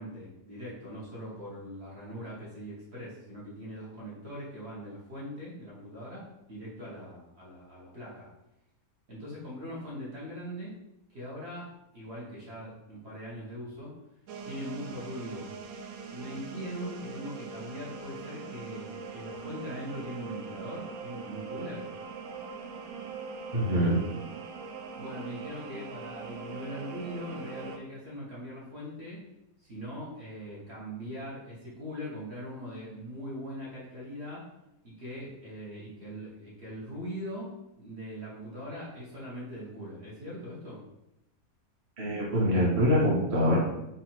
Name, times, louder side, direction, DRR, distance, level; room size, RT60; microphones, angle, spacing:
voice 1, 0.0-8.3 9.1-10.7 11.1-14.0 14.4-15.5 16.1-21.9 25.0-29.2 29.6-34.5 34.8-40.8, equal, 45° right, -6 dB, 1.2 m, -41 dB
sound 1, 14.3-27.8, right 5 dB, 70° right, 0.7 m, -42 dB
voice 2, 23.5-24.0 42.0-43.6, equal, 25° right, -6 dB, 0.9 m, -24 dB
3.9 x 2.5 x 4.3 m, 0.88 s
omnidirectional pair, 1.8 m